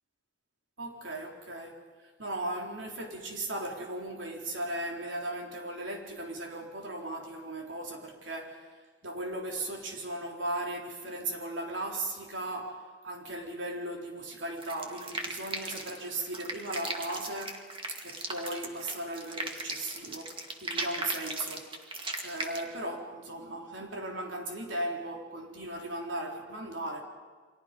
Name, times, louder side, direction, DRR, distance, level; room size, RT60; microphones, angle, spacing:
voice 1, 0.8-1.8 2.2-17.7 18.0-21.7 22.2-27.0, right 1 dB, 85° right, 4.0 m, -37 dB
sound 1, 14.6-22.6, right 2 dB, 30° right, 2.2 m, -37 dB
30.0 x 24.5 x 5.4 m
head